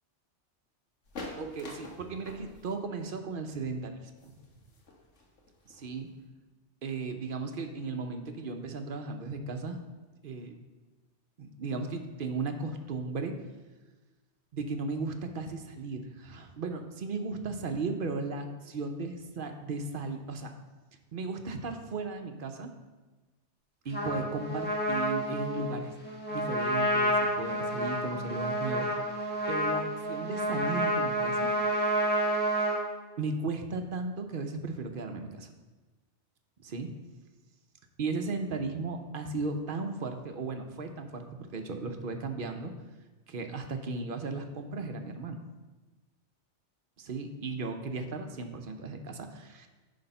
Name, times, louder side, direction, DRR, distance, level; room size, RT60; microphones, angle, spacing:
sound 1, 1.0-6.3, left 2 dB, 85° left, 1.5 m, -46 dB
voice 1, 1.4-4.3 5.7-6.1 6.8-9.8 10.2-10.6 11.4-13.3 14.5-20.5 21.1-22.7 23.8-25.9 26.3-28.9 29.5-31.5 33.2-35.5 36.6-36.9 38.0-42.7 43.3-45.4 47.0-49.7, right 3 dB, 55° right, 6 dB, 0.8 m, -36 dB
Trumpet, 23.9-32.8, equal, 10° left, 1.4 m, -29 dB
9.8 x 3.4 x 5.4 m, 1.2 s
omnidirectional pair, 1.2 m